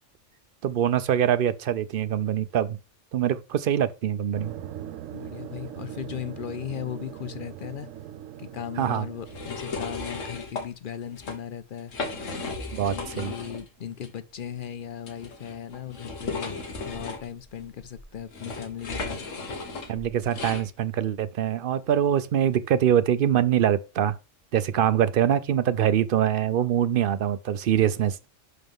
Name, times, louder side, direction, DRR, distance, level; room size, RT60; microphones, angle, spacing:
voice 1, 0.6-2.8 3.1-4.5 8.8-9.1 12.7-13.3 19.9-24.1 24.5-28.3, right 10 dB, 60° right, 0.6 m, -24 dB
sound 1, 4.3-10.4, right 11 dB, 90° right, 0.9 m, -41 dB
voice 2, 5.1-7.9 8.4-11.9 12.8-19.2, left 9 dB, 55° left, 0.6 m, -37 dB
sound 2, 9.3-10.7 11.1-11.4 11.8-13.7 14.0-14.1 15.0-20.7, left 3 dB, 80° left, 1.6 m, -35 dB
10.5 x 3.9 x 3.6 m
omnidirectional pair, 1.3 m